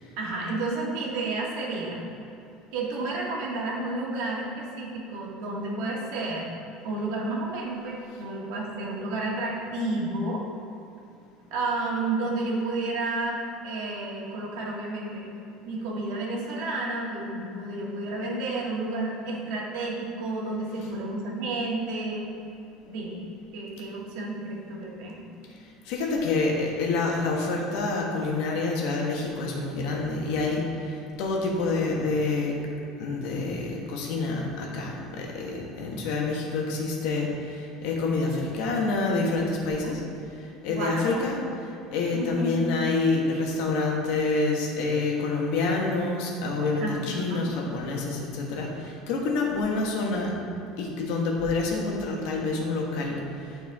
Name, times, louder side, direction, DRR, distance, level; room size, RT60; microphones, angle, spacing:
voice 1, 0.2-2.0 2.7-6.5 6.8-10.4 11.5-15.3 15.7-22.3 22.8-23.3 23.5-25.2 31.6-31.7 40.7-41.3 42.1-42.6 46.8-47.5, right 2 dB, 65° right, -3 dB, 1.7 m, -31 dB
voice 2, 25.8-32.5 33.0-40.0 40.4-41.4 41.9-50.3 50.8-53.2, left 3 dB, 65° left, -1 dB, 1.5 m, -27 dB
11.5 x 4.6 x 3.6 m, 2.7 s
cardioid pair, 165°, 0 cm